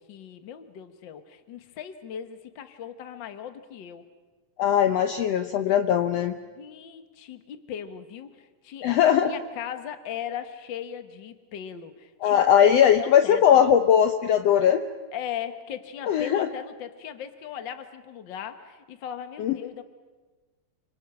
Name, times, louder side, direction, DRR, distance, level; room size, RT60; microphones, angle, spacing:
voice 1, 0.0-4.1 6.5-13.6 15.1-19.8, left 9 dB, 55° left, 9 dB, 1.3 m, -38 dB
voice 2, 4.6-6.3 8.8-9.3 12.2-14.8 16.1-16.5 19.4-19.5, left 9 dB, 80° left, 7 dB, 1.4 m, -20 dB
29.5 x 26.0 x 6.1 m, 1.3 s
omnidirectional pair, 4.1 m